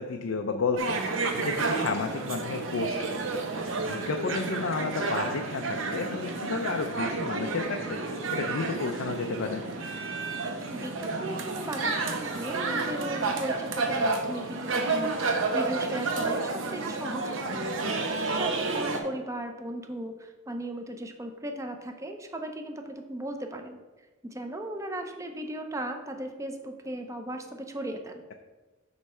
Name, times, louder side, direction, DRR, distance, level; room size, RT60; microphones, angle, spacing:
voice 1, 0.0-3.3 3.8-8.0 8.3-9.6, left 4 dB, 85° left, 5 dB, 0.5 m, -32 dB
sound 1, 0.8-19.0, right 3 dB, 75° right, 0.8 m, -30 dB
voice 2, 10.7-17.6 18.3-23.8 24.2-28.2, right 1 dB, 15° right, 5 dB, 0.5 m, -37 dB
8.0 x 3.2 x 5.5 m, 1.2 s
head